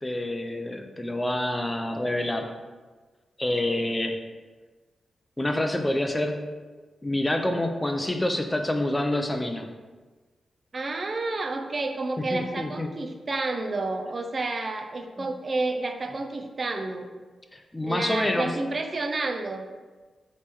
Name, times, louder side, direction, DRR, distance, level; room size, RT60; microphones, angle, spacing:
voice 1, 0.0-2.5 3.4-4.2 5.4-6.4 7.0-9.7 12.2-12.9 15.2-15.3 17.5-18.5, left 1 dB, 15° left, 5 dB, 0.5 m, -27 dB
voice 2, 10.7-17.1 17.8-19.7, right 3 dB, 40° right, 5 dB, 0.4 m, -30 dB
3.5 x 3.1 x 4.4 m, 1.3 s
cardioid pair, 85°, 0 cm